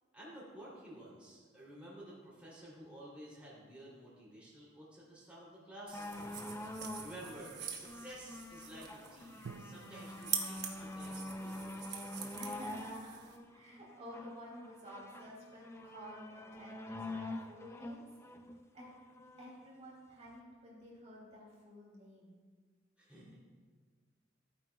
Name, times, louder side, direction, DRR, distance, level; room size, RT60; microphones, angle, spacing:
voice 1, 0.1-6.1 7.0-11.9 23.0-23.4, right 1 dB, 5° right, -7 dB, 3.0 m, -52 dB
sound 1, 5.9-19.5 20.3-20.4, left 1 dB, 15° left, 0.5 m, -46 dB
sound 2, 5.9-13.4, right 8 dB, 60° right, 1.0 m, -45 dB
Drum, 9.5-13.5, right 5 dB, 80° right, 0.4 m, -56 dB
voice 2, 12.4-13.2 13.5-18.1 18.7-18.9 19.4-22.3, equal, 35° right, -6 dB, 2.7 m, -52 dB
15.0 x 9.1 x 2.3 m, 1.5 s
head